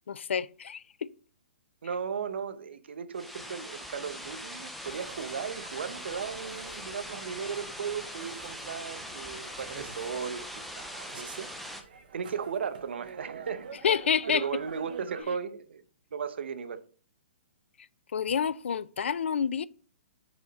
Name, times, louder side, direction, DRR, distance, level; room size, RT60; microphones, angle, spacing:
voice 1, 0.1-0.8 13.8-14.4 18.1-19.6, left 7 dB, 90° left, 0.3 m, -28 dB
voice 2, 1.8-11.3 12.1-14.0 14.3-15.8 16.1-16.8, right 6 dB, 75° right, 0.7 m, -36 dB
sound 1, 3.1-11.8, equal, ahead, 0.4 m, -42 dB
sound 2, 4.8-15.2, right 6 dB, 50° right, 0.9 m, -47 dB
5.1 x 4.8 x 4.0 m
hypercardioid pair, 170°, 6 cm